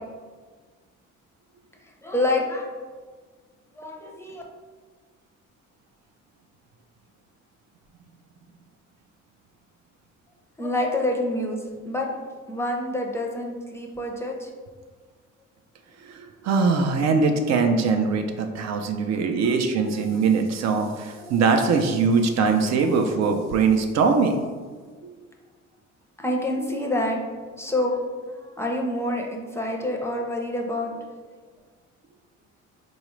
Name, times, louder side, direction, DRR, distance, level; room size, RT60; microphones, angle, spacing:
voice 1, 2.0-2.7 3.7-4.4 10.6-11.6 11.8-12.1 12.5-14.5 19.0-19.4 21.2-21.3 22.8-22.9 26.2-27.2 27.6-28.0 28.4-31.0, left 1 dB, 10° left, 0 dB, 0.5 m, -27 dB
voice 2, 16.0-24.4, right 4 dB, 60° right, 5 dB, 0.5 m, -22 dB
3.9 x 2.3 x 3.0 m, 1.5 s
cardioid pair, 90°, 30 cm